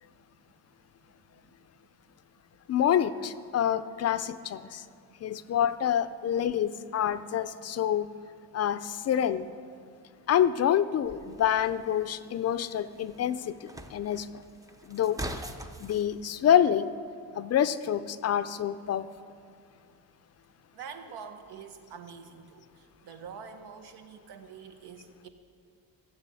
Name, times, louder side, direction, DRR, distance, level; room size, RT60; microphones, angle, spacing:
voice 1, 1.0-1.5 4.8-5.5 7.3-7.5 9.8-10.0 12.8-13.2 14.7-15.0 17.3-17.4 19.1-19.2 20.7-25.3, right 6 dB, 85° right, 7 dB, 1.3 m, -48 dB
voice 2, 2.7-4.8 5.2-8.1 8.5-9.5 10.3-14.3 14.9-15.2 15.8-16.9 17.3-19.1, left 9 dB, 40° left, 13 dB, 0.4 m, -27 dB
sound 1, 11.0-16.1, right 1 dB, 10° right, 0.5 m, -43 dB
15.0 x 6.9 x 8.3 m, 2.4 s
cardioid pair, 150°, 39 cm